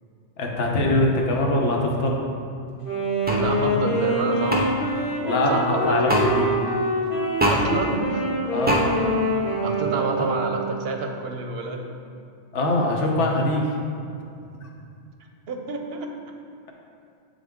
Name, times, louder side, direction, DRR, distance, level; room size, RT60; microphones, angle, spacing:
voice 1, 0.4-2.2 5.3-6.5 8.5-8.8 12.5-13.6, left 1 dB, 70° left, 0 dB, 1.2 m, -22 dB
Wind instrument woodwind instrument, 2.8-10.9, right 1 dB, 45° left, 1.1 m, -25 dB
sound 1, 3.3-3.4 4.5-4.6 6.1-6.3 7.4-7.6 8.7-8.8, equal, 15° right, 0.4 m, -21 dB
voice 2, 3.4-4.7 5.2-6.2 7.5-8.2 9.6-11.9 15.5-16.1, right 3 dB, 60° right, 3 dB, 0.8 m, -28 dB
8.1 x 3.9 x 3.5 m, 2.5 s
omnidirectional pair, 1.3 m